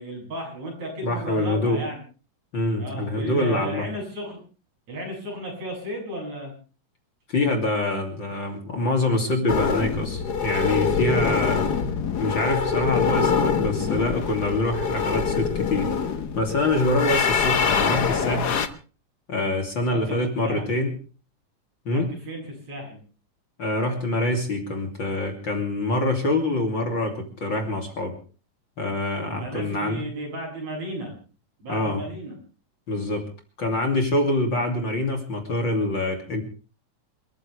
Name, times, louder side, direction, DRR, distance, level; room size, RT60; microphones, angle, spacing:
voice 1, 0.0-2.0 2.8-4.4 4.9-6.5 11.2-11.4 19.9-20.8 21.9-23.0 29.4-31.1 31.6-32.4, right 1 dB, 55° right, 0 dB, 8.7 m, -34 dB
voice 2, 1.0-1.8 2.5-3.8 7.3-11.6 12.2-15.9 16.4-18.7 19.3-21.0 21.8-22.1 23.6-28.2 28.8-30.0 31.7-32.0 32.9-33.3 33.6-36.4, left 2 dB, 40° left, 3 dB, 3.2 m, -25 dB
sound 1, 9.5-18.7, left 6 dB, 85° left, 0.8 m, -24 dB
28.0 x 14.0 x 3.4 m, 0.37 s
omnidirectional pair, 3.7 m